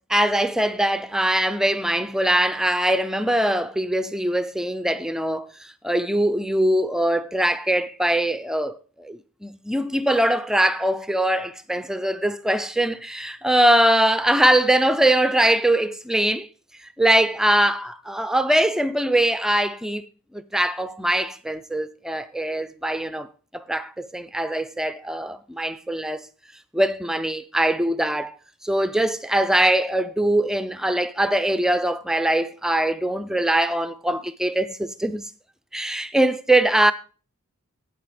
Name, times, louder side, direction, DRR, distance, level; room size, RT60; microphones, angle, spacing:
voice 1, 0.0-16.5 16.8-23.3 23.5-26.3 26.7-28.3 28.6-35.3 35.7-36.9, right 1 dB, ahead, 0.4 m, -22 dB
8.8 x 8.3 x 5.0 m
head